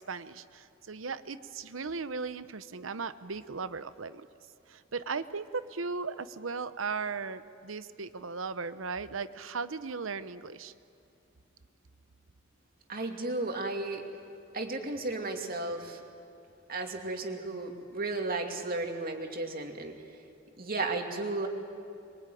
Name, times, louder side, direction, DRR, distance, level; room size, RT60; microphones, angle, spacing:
voice 1, 0.0-4.3 4.7-10.7, right 4 dB, 85° right, 12 dB, 0.9 m, -37 dB
voice 2, 12.9-14.0 14.5-16.0 16.7-20.0 20.6-21.5, right 2 dB, 50° right, 3 dB, 2.6 m, -34 dB
25.5 x 23.0 x 9.3 m, 2.6 s
head